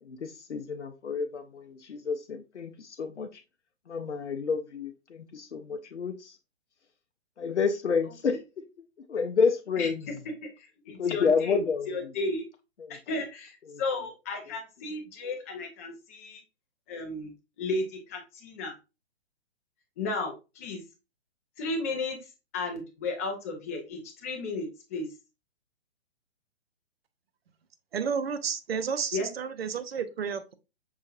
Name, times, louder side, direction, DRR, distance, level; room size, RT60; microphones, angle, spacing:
voice 1, 0.0-3.4 3.9-6.4 7.4-8.6 9.1-10.0 11.0-12.1 12.8-13.0 13.7-13.8, left 5 dB, 90° left, 0.5 m, -30 dB
voice 2, 10.4-12.5 12.9-16.4 16.9-17.3 17.6-18.7 20.0-20.8 21.6-25.1 29.1-29.3, left 3 dB, 15° left, 0.4 m, -34 dB
voice 3, 27.9-30.5, right 6 dB, 60° right, 0.6 m, -31 dB
5.6 x 2.7 x 2.4 m
figure-of-eight pair, 125°, 34 cm